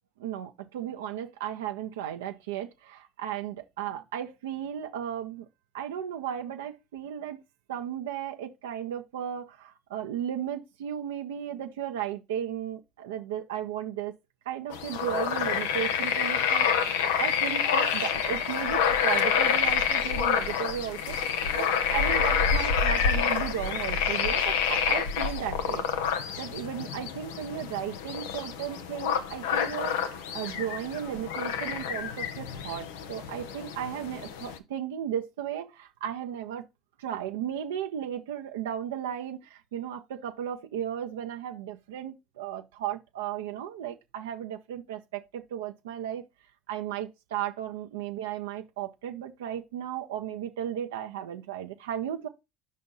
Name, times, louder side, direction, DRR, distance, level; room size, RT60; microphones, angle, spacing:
voice 1, 0.2-5.4 5.7-7.4 7.7-14.1 14.5-16.7 17.2-21.2 21.5-25.9 26.4-36.7 37.0-46.2 46.7-52.3, right 10 dB, 85° right, 0.7 m, -35 dB
sound 1, 14.7-34.6, left 7 dB, 85° left, 0.9 m, -28 dB
5.2 x 4.2 x 5.4 m
hypercardioid pair, 80°, 0 cm